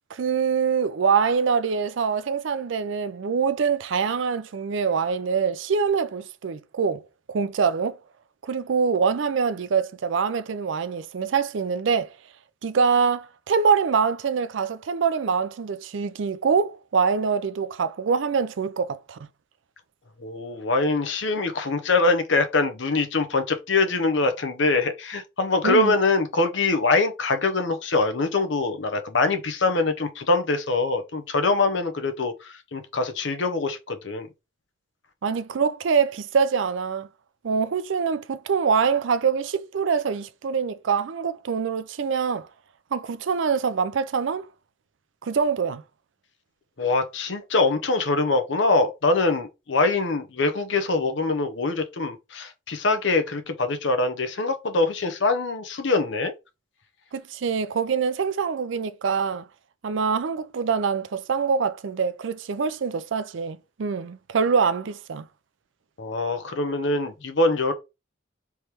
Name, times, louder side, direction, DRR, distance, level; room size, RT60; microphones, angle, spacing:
voice 1, 0.1-7.0 7.3-8.0 8.4-12.1 12.6-19.2 25.6-25.9 35.2-37.1 37.4-42.5 42.9-44.5 45.2-45.8 57.1-59.5 59.8-65.3, right 6 dB, 70° right, 0.4 m, -24 dB
voice 2, 20.2-34.3 46.8-56.3 66.0-67.7, left 3 dB, 65° left, 0.8 m, -23 dB
3.5 x 3.2 x 4.3 m
head